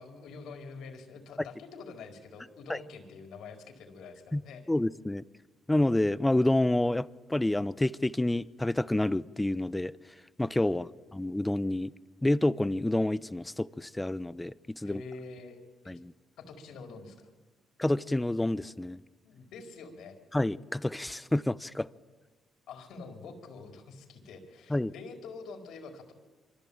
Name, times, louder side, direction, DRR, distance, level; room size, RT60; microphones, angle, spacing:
voice 1, 0.0-4.6 10.7-11.1 14.8-16.0 16.4-17.3 19.2-20.2 22.7-26.1, left 4 dB, 80° left, 5 dB, 4.7 m, -46 dB
voice 2, 4.7-5.2 5.7-11.9 12.2-15.0 15.9-16.1 17.8-19.0 20.3-21.9 24.7-24.9, left 1 dB, 10° left, 18 dB, 0.8 m, -28 dB
25.5 x 24.5 x 8.9 m, 1.2 s
cardioid pair, 90°, 0 cm